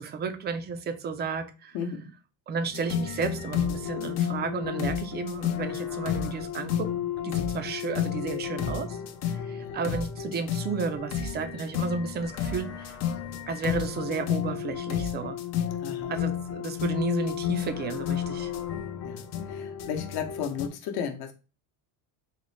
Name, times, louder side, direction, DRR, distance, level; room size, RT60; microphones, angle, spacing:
voice 1, 0.0-1.8 2.5-6.9 7.2-9.0 9.3-13.0 13.5-15.4 16.1-18.5, right 5 dB, 25° right, 0.3 m, -33 dB
voice 2, 1.7-2.1 9.5-10.0 15.8-16.1 19.0-21.3, left 7 dB, 55° left, 0.8 m, -35 dB
sound 1, 2.7-20.7, left 9 dB, 40° left, 0.4 m, -31 dB
4.0 x 2.0 x 3.1 m
supercardioid pair, 110°, 45 cm